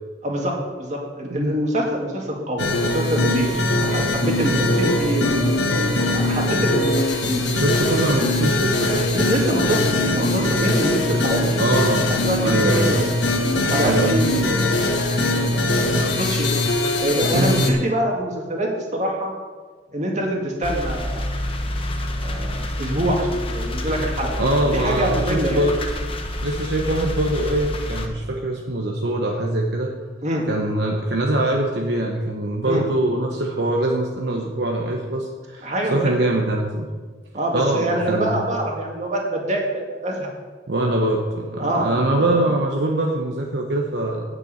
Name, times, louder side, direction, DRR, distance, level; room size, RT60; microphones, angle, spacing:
voice 1, 0.2-5.5 6.1-6.9 7.2-7.6 9.1-13.1 13.5-16.5 17.0-19.3 19.9-21.4 22.2-24.3 24.6-25.6 30.2-30.5 32.6-32.9 35.6-36.3 37.3-40.3 41.6-42.5, right 1 dB, 40° right, -1 dB, 2.3 m, -25 dB
sound 1, 2.6-17.7, left 2 dB, 75° left, 1.4 m, -21 dB
voice 2, 7.4-9.1 11.6-12.1 12.4-13.0 13.8-14.1 17.3-17.6 24.4-25.7 26.4-29.9 30.5-36.9 37.5-38.4 40.7-44.2, right 1 dB, 70° right, 0 dB, 1.1 m, -23 dB
sound 2, 20.6-28.1, left 1 dB, 30° left, 1.1 m, -28 dB
9.0 x 6.8 x 8.3 m, 1.4 s
head